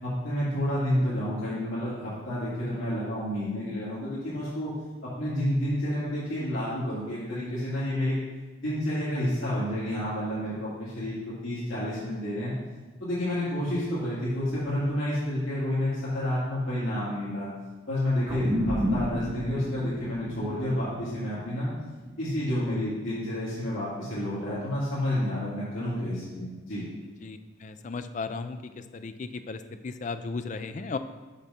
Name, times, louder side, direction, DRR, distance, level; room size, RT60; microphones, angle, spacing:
voice 1, 0.0-4.7 5.0-8.1 8.6-12.5 13.0-17.5 17.9-21.7 22.2-26.9, left 1 dB, 80° left, -11 dB, 2.3 m, -30 dB
sound 1, 18.3-23.0, equal, 20° right, 0.8 m, -32 dB
voice 2, 27.2-28.6 28.9-29.6 29.8-31.0, left 4 dB, 35° left, 10 dB, 0.3 m, -35 dB
6.7 x 6.2 x 4.2 m, 1.2 s
head